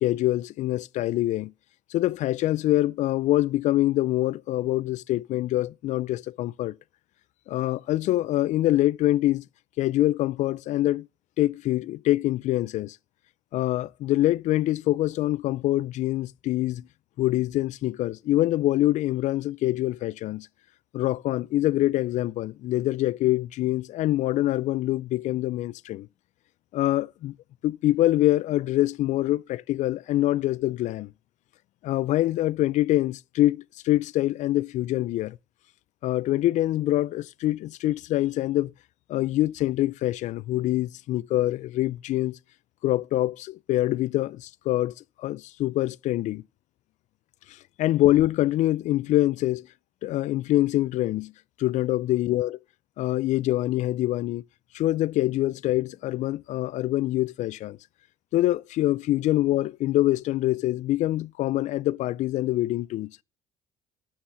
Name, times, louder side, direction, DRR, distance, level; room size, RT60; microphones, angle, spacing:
voice 1, 0.0-1.5 1.9-6.7 7.5-9.4 9.8-11.1 11.4-13.0 13.5-16.8 17.2-20.5 20.9-26.1 26.7-27.3 27.6-31.1 31.8-35.4 36.0-38.7 39.1-42.4 42.8-46.4 47.8-49.7 50.0-51.3 51.6-52.6 53.0-54.4 54.7-57.8 58.3-63.1, left 15 dB, 60° left, 0.4 m, -25 dB
8.6 x 7.2 x 5.8 m
supercardioid pair, 85°, 14 cm